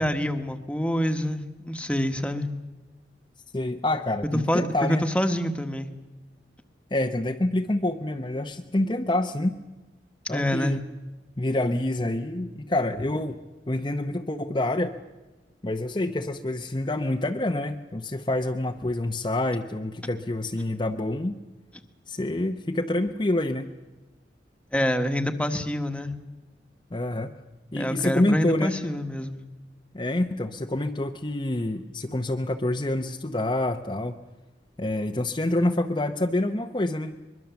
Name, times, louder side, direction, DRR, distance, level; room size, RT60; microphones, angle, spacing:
voice 1, 0.0-2.5 4.5-5.9 10.3-10.8 24.7-26.1 27.8-29.4, equal, 5° left, 7 dB, 1.3 m, -26 dB
voice 2, 3.5-5.1 6.9-9.6 10.3-10.8 11.4-13.4 13.7-15.0 15.6-21.4 22.1-23.7 26.9-27.3 27.7-28.7 29.9-34.2 34.8-37.2, left 1 dB, 25° left, 3 dB, 0.8 m, -27 dB
23.5 x 22.5 x 7.1 m, 1.2 s
head